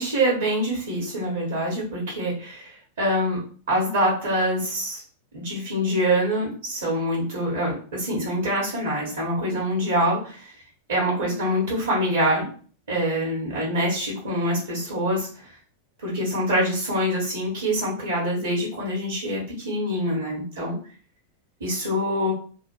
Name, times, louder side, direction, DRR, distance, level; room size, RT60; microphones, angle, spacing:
voice 1, 0.0-3.4 3.7-5.0 5.3-10.5 10.9-12.5 12.9-15.5 16.0-20.7 21.6-22.3, equal, 65° right, -4 dB, 1.0 m, -25 dB
2.8 x 2.1 x 3.0 m, 0.42 s
figure-of-eight pair, 90°, 0 cm